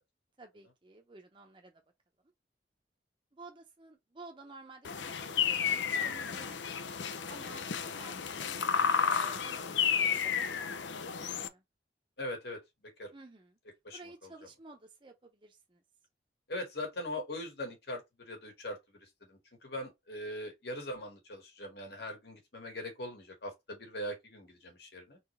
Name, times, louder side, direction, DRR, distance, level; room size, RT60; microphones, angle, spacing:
voice 1, 0.4-1.8 3.3-6.6 7.3-8.6 9.0-11.6 13.1-13.6 13.9-15.8, right 3 dB, 25° right, 0.7 m, -53 dB
sound 1, 4.8-11.5, left 7 dB, 90° left, 0.6 m, -32 dB
voice 2, 12.2-13.1 13.8-14.3 16.5-25.2, left 1 dB, 65° left, 1.8 m, -41 dB
4.0 x 3.2 x 3.2 m
head